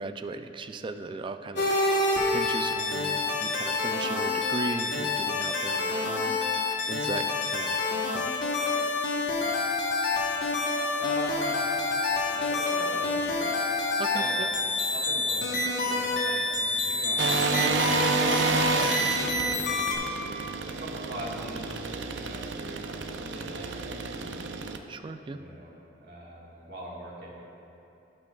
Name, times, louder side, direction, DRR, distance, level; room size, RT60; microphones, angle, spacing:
voice 1, 0.0-6.6 6.9-7.8 8.1-8.3 14.0-14.5 24.9-25.4, right 3 dB, 30° right, 9 dB, 0.3 m, -37 dB
sound 1, 1.5-20.0, left 3 dB, 80° left, 1.1 m, -27 dB
voice 2, 11.0-13.6 14.1-14.3 14.8-19.7 20.7-24.5 25.3-25.7 26.0-27.4, right 1 dB, 65° right, -4 dB, 1.6 m, -42 dB
sound 2, 17.2-24.8, right 4 dB, 85° right, 0.5 m, -30 dB
18.0 x 6.1 x 2.3 m, 3.0 s
head